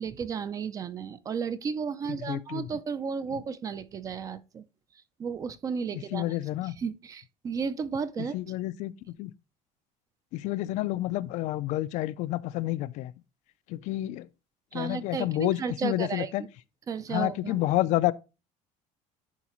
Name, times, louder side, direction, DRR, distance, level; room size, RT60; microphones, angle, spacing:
voice 1, 0.0-4.6 5.2-6.4 6.6-8.4 14.7-16.3 16.9-17.7, right 6 dB, 25° right, 0.5 m, -33 dB
voice 2, 2.2-2.7 5.9-6.7 8.2-8.9 9.2-9.3 10.3-13.1 13.7-14.3 14.7-16.4 17.1-18.1, left 16 dB, 60° left, 0.4 m, -29 dB
11.0 x 4.8 x 3.0 m
cardioid pair, 175°, 14 cm